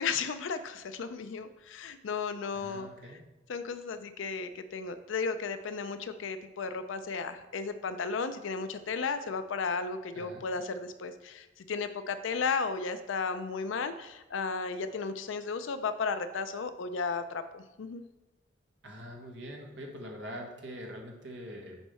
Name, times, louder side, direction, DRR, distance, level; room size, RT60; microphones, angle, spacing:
voice 1, 0.0-2.9 3.5-18.0, left 5 dB, 75° left, 10 dB, 0.4 m, -34 dB
voice 2, 2.5-3.2 10.1-10.5 18.8-21.8, equal, 60° right, 1 dB, 1.5 m, -44 dB
7.1 x 4.6 x 5.5 m, 1.1 s
head